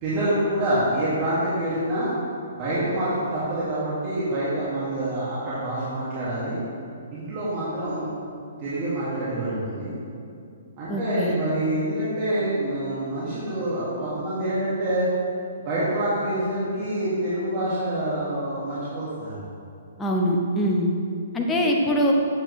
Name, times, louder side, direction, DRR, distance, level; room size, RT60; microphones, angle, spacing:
voice 1, 0.0-2.1 2.6-6.6 7.1-8.0 8.6-9.9 10.8-15.1 15.6-19.4, right 1 dB, 35° right, -11 dB, 1.9 m, -26 dB
voice 2, 10.9-11.3 20.0-20.9 21.3-22.1, equal, 10° left, -1 dB, 0.8 m, -23 dB
7.6 x 7.5 x 3.1 m, 2.5 s
hypercardioid pair, 150°, 0 cm